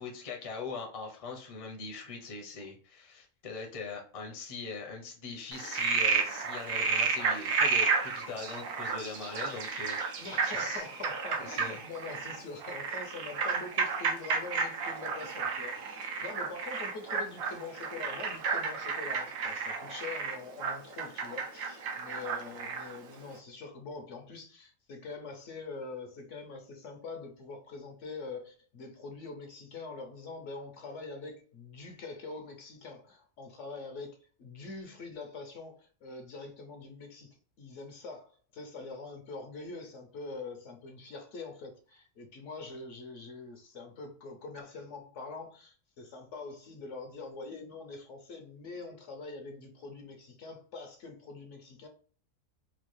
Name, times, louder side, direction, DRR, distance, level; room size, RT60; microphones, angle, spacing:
voice 1, 0.0-10.8 11.4-11.8, left 4 dB, 30° left, 0.7 m, -41 dB
Frog, 5.5-23.0, right 5 dB, 80° right, 1.1 m, -32 dB
voice 2, 10.2-51.9, left 3 dB, 65° left, 1.0 m, -44 dB
4.3 x 2.3 x 3.1 m
omnidirectional pair, 1.4 m